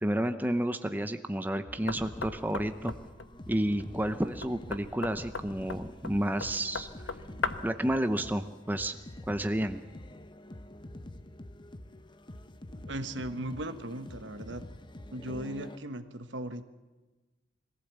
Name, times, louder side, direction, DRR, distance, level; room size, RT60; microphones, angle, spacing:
voice 1, 0.0-2.9 3.5-6.9 7.6-8.9 9.3-9.8, right 1 dB, 10° right, 8 dB, 0.7 m, -30 dB
sound 1, 1.6-15.8, left 1 dB, 25° left, 0.8 m, -47 dB
Knock, 1.9-7.8, left 4 dB, 75° left, 1.1 m, -39 dB
voice 2, 12.9-14.6 15.1-16.6, right 1 dB, 65° right, 10 dB, 1.2 m, -37 dB
22.0 x 15.5 x 8.2 m, 1.2 s
head